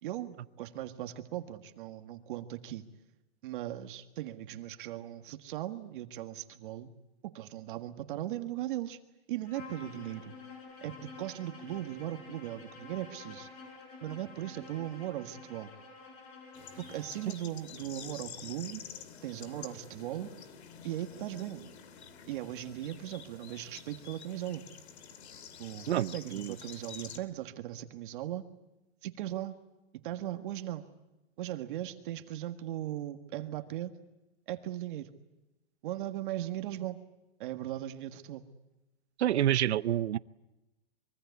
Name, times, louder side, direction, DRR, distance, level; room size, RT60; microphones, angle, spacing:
voice 1, 0.0-2.8 3.4-6.9 7.2-9.0 9.3-10.3 10.8-13.5 14.0-15.7 16.8-18.8 19.2-20.3 20.8-21.7 22.3-24.6 25.6-28.5 29.0-29.5 30.0-30.9 31.4-33.9 34.5-35.1 35.8-37.0 37.4-38.4, right 13 dB, 50° right, 8 dB, 1.8 m, -38 dB
Bowed string instrument, 9.4-17.3, left 4 dB, 35° left, 6.9 m, -49 dB
sound 1, 16.5-27.2, left 7 dB, 75° left, 2.6 m, -49 dB
voice 2, 25.9-26.5 39.2-40.2, right 12 dB, 90° right, 18 dB, 0.8 m, -28 dB
25.0 x 23.5 x 8.4 m, 0.98 s
hypercardioid pair, 160°, 32 cm